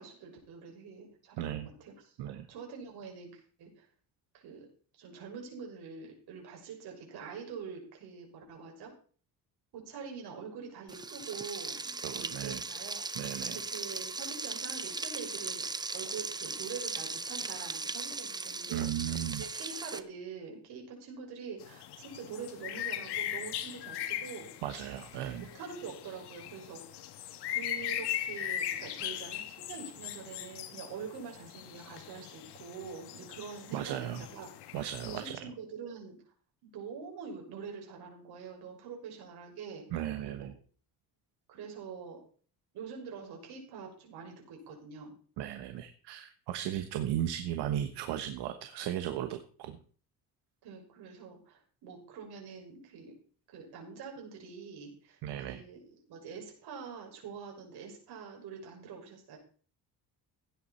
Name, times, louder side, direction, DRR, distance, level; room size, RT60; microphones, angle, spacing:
voice 1, 0.0-3.9 4.3-4.7 4.9-8.9 9.7-15.7 15.9-18.8 19.3-24.6 25.5-27.0 27.5-34.5 35.0-36.2 36.6-39.9 40.2-40.5 41.5-42.2 42.7-45.1 50.6-53.1 53.5-55.8 56.1-59.4, right 6 dB, 75° right, 1 dB, 5.9 m, -45 dB
voice 2, 1.4-1.7 2.2-2.5 12.0-12.6 13.1-13.6 18.7-19.4 24.6-25.5 33.7-34.2 34.7-35.4 39.9-40.5 45.4-49.8 55.2-55.6, right 11 dB, 90° right, 8 dB, 1.2 m, -36 dB
Frying (food), 10.9-20.0, right 3 dB, 10° right, 0.5 m, -38 dB
sound 1, 21.6-35.3, left 11 dB, 80° left, 1.5 m, -39 dB
16.5 x 9.6 x 4.3 m, 0.44 s
cardioid pair, 145°, 40 cm